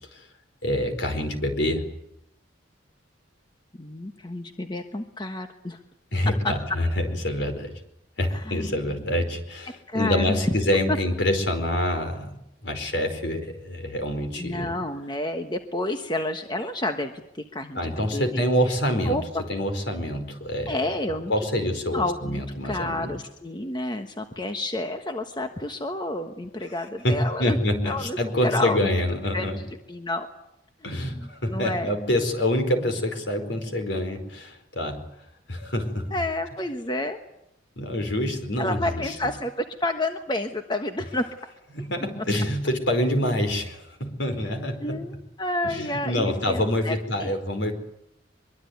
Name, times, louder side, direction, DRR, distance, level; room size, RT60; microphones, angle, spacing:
voice 1, 0.6-1.8 6.1-7.7 8.2-12.4 12.6-14.7 17.7-19.2 19.5-20.8 21.1-23.1 26.8-29.6 30.8-35.0 35.5-36.1 37.8-39.1 41.7-45.0 45.6-47.7, left 1 dB, 65° left, 6 dB, 4.7 m, -26 dB
voice 2, 3.7-5.8 6.4-6.5 8.3-9.0 9.9-10.4 10.9-11.0 14.4-18.4 19.0-19.4 20.7-21.3 21.9-27.6 27.8-28.8 29.3-30.3 30.9-32.0 36.1-37.2 38.6-41.3 44.6-47.3, left 1 dB, 25° left, 6 dB, 1.3 m, -30 dB
23.5 x 23.0 x 9.5 m, 0.82 s
head